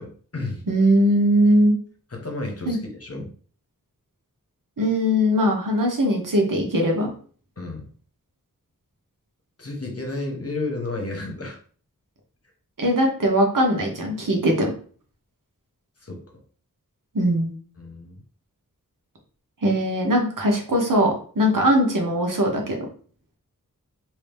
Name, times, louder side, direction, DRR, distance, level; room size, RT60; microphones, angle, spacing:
voice 1, 0.0-0.6 2.1-3.3 7.6-7.9 9.6-11.6 16.0-16.4 17.8-18.2, left 2 dB, 45° left, 2 dB, 1.1 m, -32 dB
voice 2, 0.7-1.7 2.6-2.8 4.8-7.1 12.8-14.7 17.1-17.5 19.6-22.8, equal, 70° right, 1 dB, 1.2 m, -20 dB
3.1 x 3.0 x 3.4 m, 0.43 s
wide cardioid pair, 50°, 34 cm